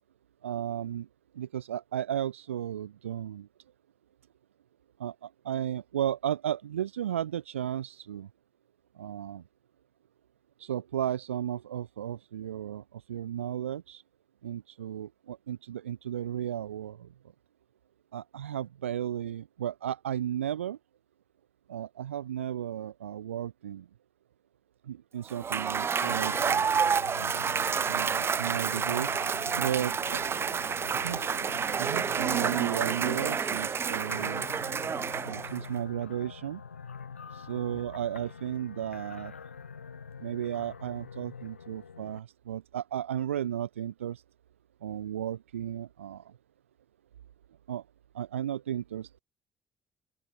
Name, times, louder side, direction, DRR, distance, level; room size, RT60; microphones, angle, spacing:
voice 1, 0.4-1.1 1.3-3.5 5.0-8.3 9.0-9.4 10.6-12.8 13.1-14.0 14.4-17.1 18.1-20.8 21.7-23.8 24.9-26.6 27.1-27.4 27.9-29.1 29.6-30.2 31.0-31.3 31.8-34.4 35.2-36.6 37.3-39.3 40.2-44.2 44.8-46.2 47.7-47.8 48.1-49.1, right 10 dB, 80° right, 2.4 m, -34 dB
Cheering / Applause / Crowd, 25.3-35.8, right 6 dB, 35° right, 0.8 m, -29 dB
sound 1, 26.0-42.2, left 6 dB, 85° left, 3.0 m, -45 dB
open air
figure-of-eight pair, 45°, 7 cm